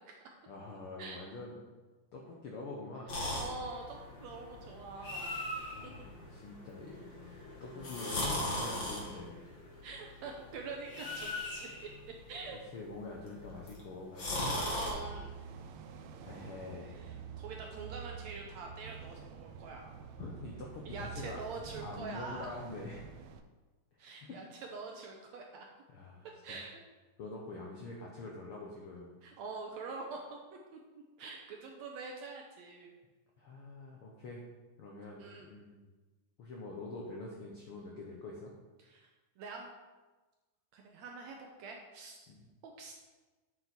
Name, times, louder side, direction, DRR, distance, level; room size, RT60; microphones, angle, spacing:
voice 1, 0.5-1.5 2.1-3.2 5.7-9.5 12.5-14.4 16.2-17.2 20.2-21.4 21.8-23.1 23.9-24.4 25.9-26.6 27.2-29.2 33.4-34.4 34.8-35.9 36.4-38.5 42.3-42.5, left 2 dB, 70° left, -2 dB, 1.3 m, -45 dB
sound 1, 3.1-14.9, left 1 dB, 40° left, 2.1 m, -40 dB
voice 2, 3.3-5.4 9.8-12.6 14.5-15.4 17.0-19.9 20.8-22.5 24.0-24.4 24.7-25.7 26.4-26.8 29.2-30.2 30.7-30.8 31.2-32.9 35.2-35.5 38.9-39.1 39.4-39.7 40.7-42.3 42.6-42.9, right 3 dB, 75° right, 1 dB, 1.7 m, -45 dB
sound 2, 14.8-23.4, right 7 dB, 90° right, 1.5 m, -48 dB
8.8 x 6.9 x 4.4 m, 1.2 s
omnidirectional pair, 3.9 m